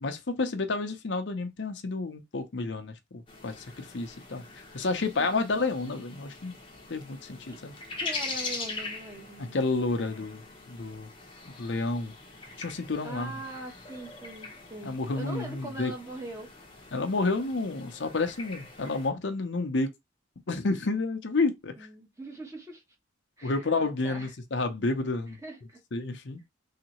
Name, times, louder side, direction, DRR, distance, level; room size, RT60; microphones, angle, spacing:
voice 1, 0.0-4.4 4.7-6.5 6.9-7.7 9.4-10.4 10.7-11.1 11.6-12.1 12.6-13.3 14.8-15.9 16.9-19.9 20.5-21.7 23.4-25.4 25.9-26.4, left 3 dB, 65° left, 0.7 m, -30 dB
sound 1, 3.3-19.1, left 3 dB, 25° left, 0.8 m, -42 dB
voice 2, 5.1-5.5 7.5-7.6 8.0-9.6 10.0-10.2 13.0-16.5 21.8-22.8 23.4-24.3 25.4-25.8, right 2 dB, 15° right, 1.0 m, -42 dB
3.3 x 2.8 x 3.0 m
head